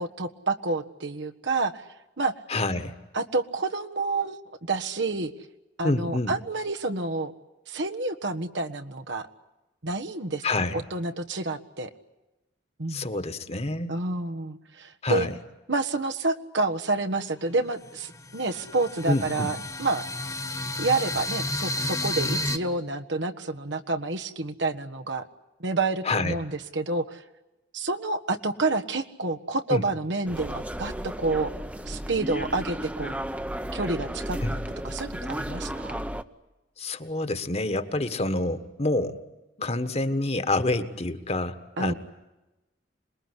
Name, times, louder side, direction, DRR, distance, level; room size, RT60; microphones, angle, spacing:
voice 1, 0.0-1.8 2.2-2.3 3.1-5.3 5.8-7.3 7.7-9.3 9.8-10.4 10.9-11.9 12.8-13.1 13.9-15.3 15.7-20.0 20.8-25.2 25.6-27.2 27.7-31.5 31.9-33.1 33.7-34.6 34.8-36.0 41.8-41.9, right 3 dB, 75° right, 6 dB, 1.5 m, -29 dB
voice 2, 2.5-2.9 5.8-6.3 10.4-10.8 12.9-13.9 15.0-15.3 19.1-19.5 26.0-26.4 29.7-29.9 34.4-34.5 36.8-39.2 39.6-41.9, left 2 dB, 35° left, 10 dB, 1.5 m, -27 dB
sound 1, 17.1-17.2 17.7-22.6, left 1 dB, 20° left, 1.5 m, -31 dB
sound 2, 30.3-36.2, right 1 dB, 10° right, 0.9 m, -34 dB
27.0 x 21.0 x 9.9 m, 1.0 s
head